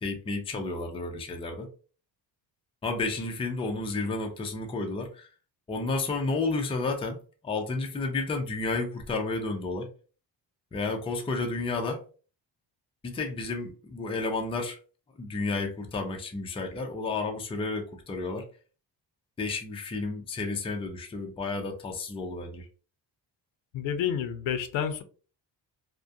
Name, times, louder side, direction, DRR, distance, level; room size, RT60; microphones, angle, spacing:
voice 1, 0.0-1.7 2.8-5.3 5.7-7.2 7.4-9.9 10.7-12.0 13.0-14.8 15.2-18.5 19.4-22.7, left 3 dB, 15° left, 3 dB, 0.3 m, -31 dB
voice 2, 23.7-25.0, left 8 dB, 85° left, 9 dB, 0.5 m, -29 dB
2.3 x 2.1 x 2.6 m, 0.38 s
cardioid pair, 115°, 45 cm